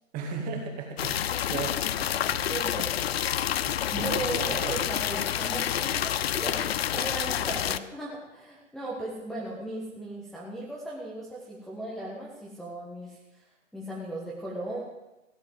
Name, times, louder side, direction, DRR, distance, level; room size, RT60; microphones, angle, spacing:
voice 1, 0.1-1.2 1.5-2.5 3.6-4.8, right 5 dB, 20° right, 1 dB, 2.4 m, -37 dB
sound 1, 1.0-7.8, left 10 dB, 55° left, 0.6 m, -28 dB
voice 2, 2.5-2.9 3.9-14.8, right 2 dB, ahead, -8 dB, 1.6 m, -37 dB
16.0 x 8.1 x 7.6 m, 0.99 s
hypercardioid pair, 150°, 38 cm